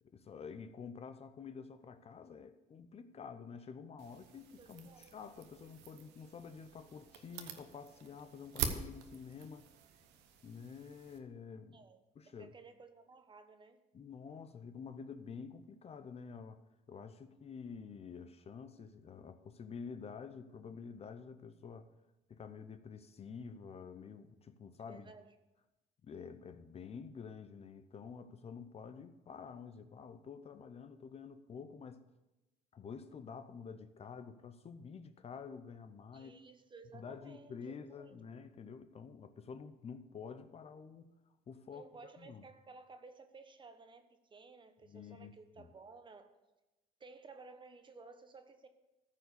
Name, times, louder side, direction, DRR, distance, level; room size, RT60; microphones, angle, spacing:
voice 1, 0.0-9.7 10.4-11.8 12.1-12.5 13.9-16.6 16.9-21.9 22.3-25.1 26.0-32.0 32.7-36.3 36.9-41.1 41.5-42.4 44.8-45.7, left 6 dB, 35° left, 0.7 m, -49 dB
sound 1, 4.0-11.2, right 7 dB, 90° right, 1.1 m, -45 dB
voice 2, 4.6-5.0 11.7-12.0 12.4-13.8 24.8-25.3 36.1-37.6 38.0-38.2 41.7-46.3 47.0-48.7, right 4 dB, 30° right, 1.1 m, -56 dB
14.0 x 4.7 x 6.7 m
cardioid pair, 110°, 17 cm